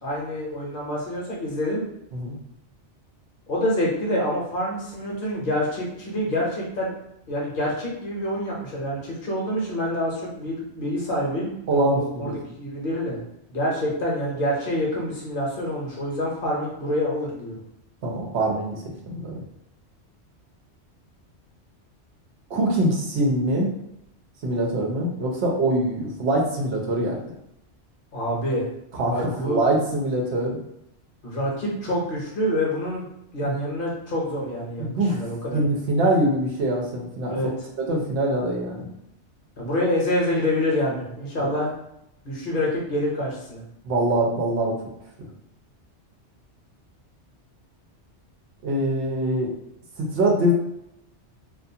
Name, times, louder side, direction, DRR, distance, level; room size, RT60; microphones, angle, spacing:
voice 1, 0.0-1.8 3.5-6.9 7.3-12.3 12.6-13.2 13.5-17.5 28.1-28.7 29.1-29.6 31.2-34.9 35.2-35.6 37.3-37.5 39.6-41.7 42.2-43.6, left 1 dB, 55° left, -4 dB, 0.8 m, -26 dB
voice 2, 11.7-12.4 18.0-19.4 22.5-23.7 24.4-27.3 29.0-30.6 33.4-33.5 34.8-35.2 35.5-37.4 37.9-38.9 41.4-41.5 43.8-44.8 45.2-45.3 48.6-49.5 50.0-50.5, right 1 dB, 70° right, -1 dB, 0.9 m, -24 dB
2.4 x 2.3 x 2.7 m, 0.79 s
omnidirectional pair, 1.2 m